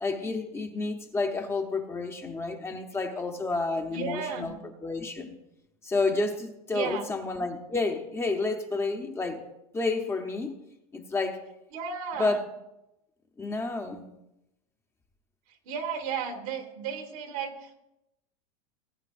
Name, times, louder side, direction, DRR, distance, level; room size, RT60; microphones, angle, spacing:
voice 1, 0.0-4.5 4.8-5.4 5.8-9.4 9.7-10.5 10.9-11.4 12.2-12.4 13.4-14.0, left 3 dB, 15° left, 4 dB, 0.9 m, -30 dB
voice 2, 3.9-4.6 6.7-7.1 11.7-12.4 15.5-17.8, right 6 dB, 75° right, 4 dB, 2.0 m, -34 dB
18.5 x 8.8 x 2.5 m, 0.89 s
supercardioid pair, 135°, 19 cm